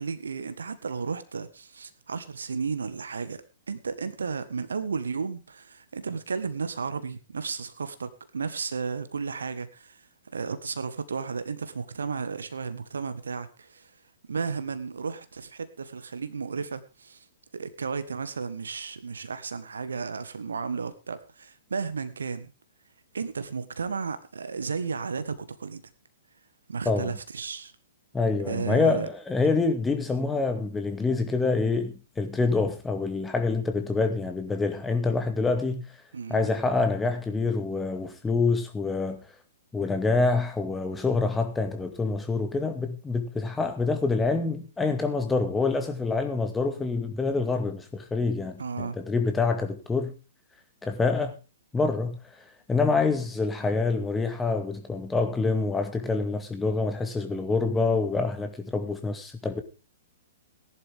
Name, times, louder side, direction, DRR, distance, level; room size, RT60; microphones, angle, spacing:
voice 1, 0.0-3.4 3.7-10.0 10.3-13.9 14.3-17.2 17.5-22.5 23.1-25.8 26.7-27.7 28.5-29.1 36.1-36.5 48.6-49.0, right 5 dB, 70° right, 1.6 m, -33 dB
voice 2, 28.1-35.8 36.3-39.2 39.7-50.1 50.8-51.4 51.7-52.2 52.7-59.6, left 3 dB, 10° left, 2.2 m, -26 dB
18.5 x 11.0 x 3.7 m
figure-of-eight pair, 115°, 0 cm